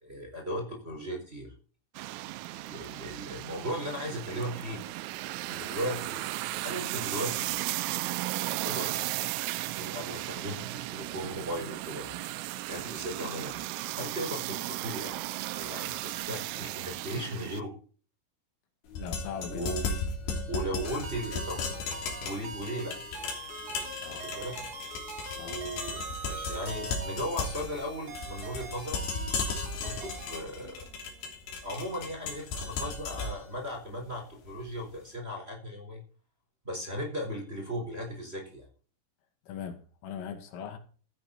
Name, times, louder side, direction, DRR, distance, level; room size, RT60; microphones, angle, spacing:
voice 1, 0.0-1.5 2.5-4.8 5.4-6.2 6.6-7.5 8.6-9.0 9.7-12.2 12.7-15.2 15.5-17.7 19.5-19.8 20.5-23.0 24.1-24.6 25.3-29.0 29.8-30.9 31.6-36.0 36.6-38.7, equal, 15° right, 4.2 m, -37 dB
sound 1, 2.0-17.6, right 18 dB, 90° right, 3.4 m, -35 dB
sound 2, 18.9-34.9, left 4 dB, 65° left, 5.4 m, -36 dB
voice 2, 19.0-19.7 24.0-24.3 25.4-25.6 39.5-40.8, left 7 dB, 80° left, 4.6 m, -40 dB
sound 3, 20.8-30.4, right 3 dB, 35° right, 3.5 m, -42 dB
15.0 x 10.5 x 4.3 m
omnidirectional pair, 5.7 m